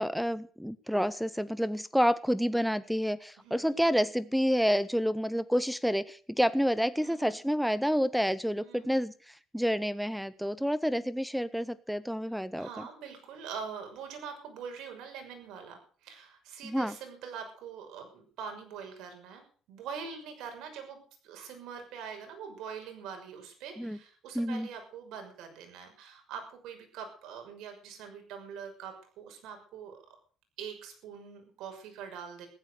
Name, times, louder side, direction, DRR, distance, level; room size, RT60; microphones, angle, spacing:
voice 1, 0.0-12.9 16.6-16.9 23.8-24.0 24.3-24.7, equal, ahead, 17 dB, 0.6 m, -29 dB
voice 2, 3.4-3.9 7.0-7.4 8.6-8.9 12.5-19.4 19.7-21.0 21.2-30.0 30.6-32.5, right 6 dB, 85° right, 5 dB, 6.2 m, -44 dB
15.5 x 13.0 x 6.6 m, 0.43 s
cardioid pair, 145°, 0 cm